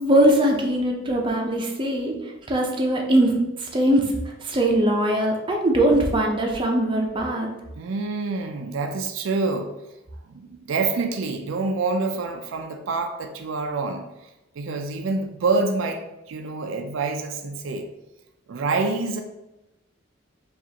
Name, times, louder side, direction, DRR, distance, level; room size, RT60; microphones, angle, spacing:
voice 1, 0.0-4.1 4.4-7.5, right 1 dB, 25° right, 0 dB, 0.5 m, -21 dB
voice 2, 7.8-9.7 10.2-14.0 14.6-17.9 18.5-19.2, right 3 dB, 75° right, 5 dB, 0.4 m, -26 dB
4.9 x 2.4 x 2.8 m, 0.97 s
head